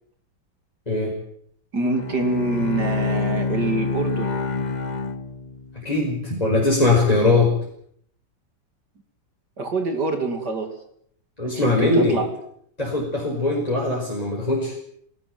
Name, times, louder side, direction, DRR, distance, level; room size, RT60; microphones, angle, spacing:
voice 1, 1.7-4.3 9.6-10.7 11.5-12.2, right 3 dB, 55° right, 6 dB, 3.4 m, -25 dB
Bowed string instrument, 1.8-5.9, left 4 dB, 35° left, 0.8 m, -27 dB
voice 2, 5.7-7.5 11.4-12.2 12.8-14.7, left 2 dB, 20° left, -2 dB, 5.4 m, -21 dB
20.5 x 19.0 x 9.5 m, 0.67 s
omnidirectional pair, 2.1 m